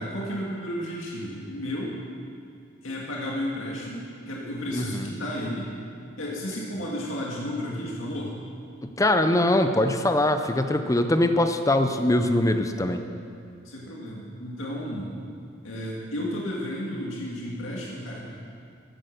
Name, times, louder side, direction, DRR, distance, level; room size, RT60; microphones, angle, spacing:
voice 1, 0.0-2.0 2.8-5.7 6.2-8.3 13.6-15.1 15.6-18.2, equal, 85° left, -4 dB, 2.1 m, -32 dB
voice 2, 4.7-5.1 9.0-13.0, left 1 dB, 15° left, 7 dB, 0.6 m, -22 dB
14.5 x 8.6 x 6.6 m, 2.3 s
head